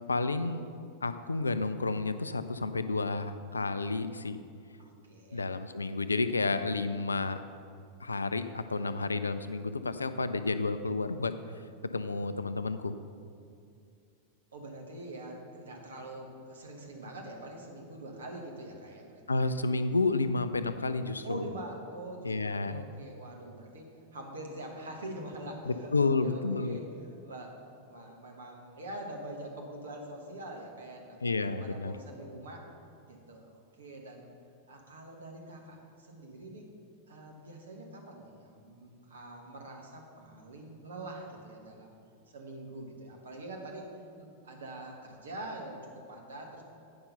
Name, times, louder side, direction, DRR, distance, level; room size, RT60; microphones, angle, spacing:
voice 1, 0.1-0.7 1.0-4.4 5.3-7.4 8.0-11.3 11.9-12.9 19.3-21.4 22.2-22.8 25.7-26.8 31.2-31.9, left 3 dB, 80° left, 11 dB, 0.4 m, -31 dB
voice 2, 4.8-5.4 14.5-19.6 21.2-32.7 33.1-34.3 34.7-36.7 37.1-42.0 42.3-43.9 44.2-46.6, right 1 dB, 70° right, 1 dB, 1.3 m, -44 dB
8.6 x 5.8 x 5.5 m, 2.4 s
figure-of-eight pair, 90°, 0 cm